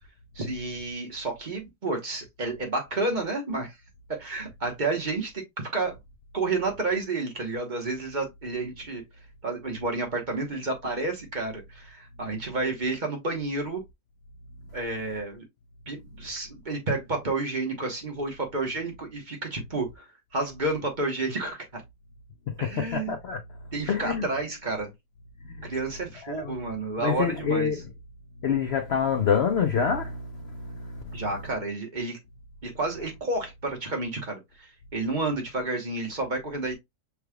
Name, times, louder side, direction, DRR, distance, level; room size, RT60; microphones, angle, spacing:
voice 1, 0.3-3.7 4.1-5.9 6.3-9.0 9.4-13.8 14.7-15.5 15.9-20.1 20.3-21.8 22.6-23.1 23.7-24.9 25.6-27.7 31.1-32.2 32.6-36.7, right 3 dB, 30° right, 1.1 m, -30 dB
voice 2, 22.5-23.4 23.9-24.3 25.4-25.8 26.2-26.6 27.0-27.9 28.4-31.3, left 6 dB, 75° left, 0.6 m, -27 dB
5.8 x 3.3 x 2.3 m
omnidirectional pair, 1.9 m